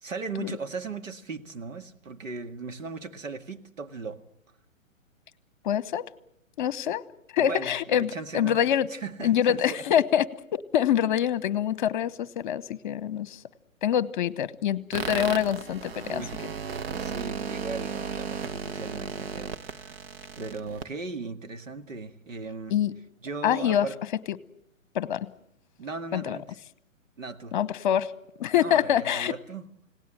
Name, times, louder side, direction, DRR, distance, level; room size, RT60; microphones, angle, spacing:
voice 1, 0.0-4.2 7.4-9.8 16.1-16.4 17.0-20.1 20.4-22.8 23.2-24.0 25.8-26.4 27.2-27.6 28.5-29.7, right 4 dB, 70° right, 2.0 m, -37 dB
voice 2, 5.6-6.1 6.6-7.0 7.3-8.9 9.2-13.4 13.8-16.2 22.7-22.9 23.4-23.9 24.9-25.3 26.1-26.4 27.5-28.1 28.4-29.3, left 10 dB, 35° left, 1.1 m, -25 dB
sound 1, 14.9-20.9, right 6 dB, 50° right, 1.4 m, -35 dB
29.5 x 18.0 x 7.6 m
figure-of-eight pair, 125°, 40 cm